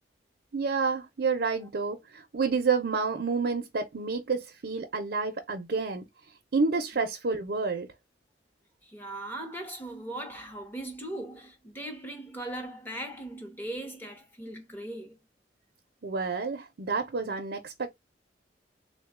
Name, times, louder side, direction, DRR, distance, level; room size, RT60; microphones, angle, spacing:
voice 1, 0.5-6.1 6.5-7.9 16.0-17.9, right 4 dB, 60° right, 0.6 m, -29 dB
voice 2, 8.8-15.2, right 1 dB, 10° left, 0.8 m, -39 dB
3.6 x 2.2 x 3.5 m
head